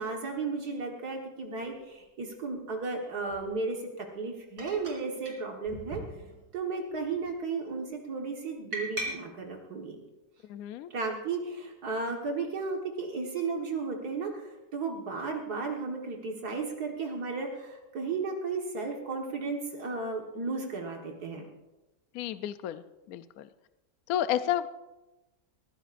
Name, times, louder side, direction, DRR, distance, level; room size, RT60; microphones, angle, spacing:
voice 1, 0.0-6.0 6.5-10.0 10.9-21.4, right 4 dB, 65° right, 1 dB, 2.0 m, -34 dB
sound 1, 1.6-1.7 3.3-3.5 4.6-5.0 5.3-5.4 5.7-6.6 6.9-7.3 8.7-9.1, equal, 90° right, 3.6 m, -39 dB
voice 2, 10.5-10.9 22.1-23.5 24.1-24.7, left 11 dB, 70° left, 12 dB, 0.9 m, -31 dB
21.0 x 15.5 x 2.5 m, 1.0 s
omnidirectional pair, 1.8 m